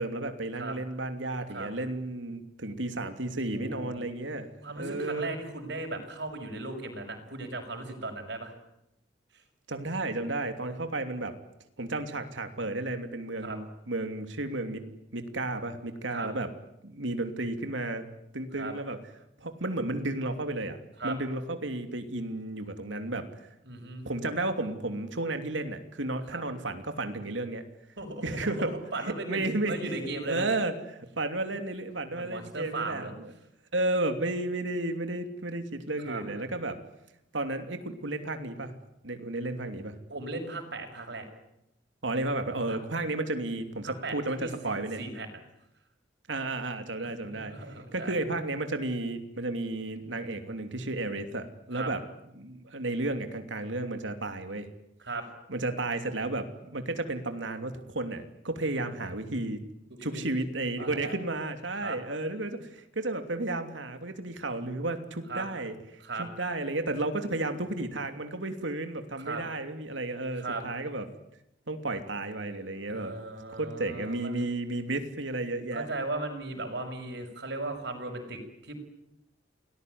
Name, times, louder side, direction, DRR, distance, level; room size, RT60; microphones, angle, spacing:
voice 1, 0.0-5.3 9.7-11.3 11.8-14.8 15.1-16.5 16.8-18.0 18.3-19.0 19.4-23.3 24.0-27.6 28.2-28.7 29.0-29.9 30.3-33.3 33.7-36.8 37.3-38.7 39.0-39.9 42.0-45.0 46.3-47.5 47.9-52.0 52.4-54.7 55.5-59.6 60.0-71.1 71.7-73.2 73.6-75.9, right 2 dB, 90° right, 7 dB, 3.0 m, -33 dB
voice 2, 3.5-4.2 4.6-8.5 13.4-13.6 16.1-16.3 18.6-18.7 21.0-21.2 23.6-24.0 26.3-26.4 28.0-30.5 32.1-33.1 36.0-36.2 40.1-41.3 42.7-42.8 43.8-45.4 47.2-48.2 51.7-51.9 55.0-55.2 59.9-60.2 60.8-61.2 61.8-62.0 65.3-65.5 66.0-66.3 69.2-69.4 70.3-70.6 72.9-74.4 75.7-78.7, right 2 dB, 65° right, 3 dB, 6.2 m, -37 dB
29.5 x 20.0 x 9.5 m, 0.83 s
head